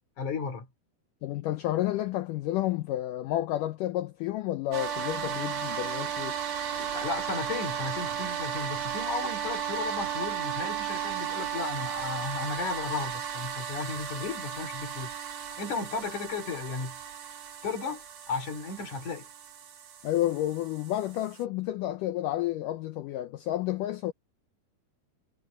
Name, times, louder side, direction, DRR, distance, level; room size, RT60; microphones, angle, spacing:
voice 1, 0.2-0.7 6.8-15.1 15.6-17.0 17.6-19.3, left 4 dB, 50° left, 4.2 m, -34 dB
voice 2, 1.2-6.4 20.0-24.1, left 14 dB, 85° left, 1.8 m, -30 dB
sound 1, 4.7-21.4, right 8 dB, 55° right, 3.3 m, -35 dB
omnidirectional pair, 4.7 m